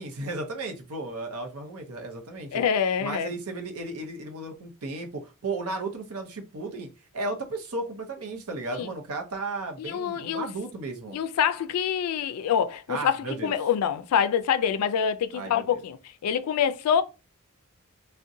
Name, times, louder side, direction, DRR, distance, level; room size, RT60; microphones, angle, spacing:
voice 1, 0.0-2.6 3.0-6.9 7.1-11.2 12.9-13.5 15.3-15.8, right 2 dB, 70° right, 0.7 m, -34 dB
voice 2, 2.5-3.3 8.7-8.9 9.8-10.5 11.1-17.0, left 8 dB, 80° left, 0.3 m, -26 dB
3.7 x 2.1 x 2.6 m
head